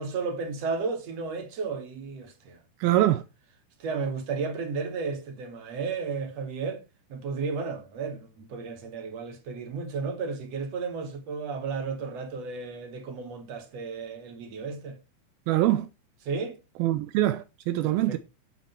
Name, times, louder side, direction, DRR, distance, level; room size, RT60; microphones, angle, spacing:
voice 1, 0.0-2.6 3.8-6.8 7.1-15.0 16.2-16.6 17.8-18.2, right 4 dB, 40° right, 2.8 m, -33 dB
voice 2, 2.8-3.2 15.5-15.9 16.8-18.2, right 14 dB, 85° right, 2.1 m, -23 dB
12.0 x 8.5 x 4.4 m
omnidirectional pair, 5.3 m